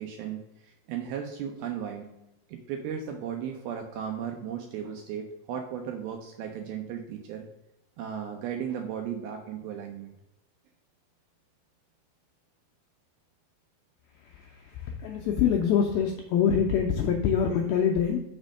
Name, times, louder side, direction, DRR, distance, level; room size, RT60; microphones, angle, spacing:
voice 1, 0.0-2.1 2.5-7.5 8.0-10.1, right 8 dB, 80° right, 4 dB, 2.2 m, -36 dB
voice 2, 14.7-18.2, left 7 dB, 90° left, 2 dB, 2.1 m, -25 dB
6.2 x 4.2 x 6.1 m, 0.96 s
omnidirectional pair, 5.0 m